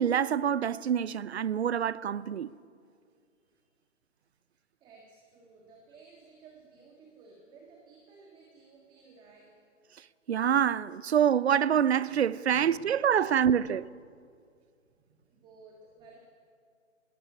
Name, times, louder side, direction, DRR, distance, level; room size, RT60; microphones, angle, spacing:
voice 1, 0.0-2.5 10.3-13.9, right 8 dB, 55° right, 0.7 m, -26 dB
voice 2, 4.8-9.5 12.5-12.9 13.2-13.5 14.9-16.2, right 4 dB, 10° right, 1.7 m, -55 dB
20.0 x 18.0 x 8.8 m
hypercardioid pair, 150°, 39 cm